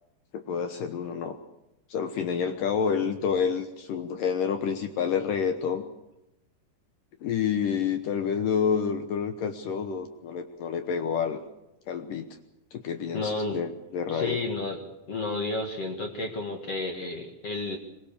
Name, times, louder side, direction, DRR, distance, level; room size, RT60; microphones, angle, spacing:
voice 1, 0.3-1.4 1.9-5.8 7.2-11.4 11.9-12.3 12.7-14.4, left 7 dB, 70° left, 7 dB, 2.2 m, -28 dB
voice 2, 13.1-13.6 14.1-14.8 15.1-17.8, left 2 dB, 50° left, 3 dB, 2.0 m, -31 dB
24.0 x 21.5 x 6.9 m, 0.91 s
omnidirectional pair, 5.0 m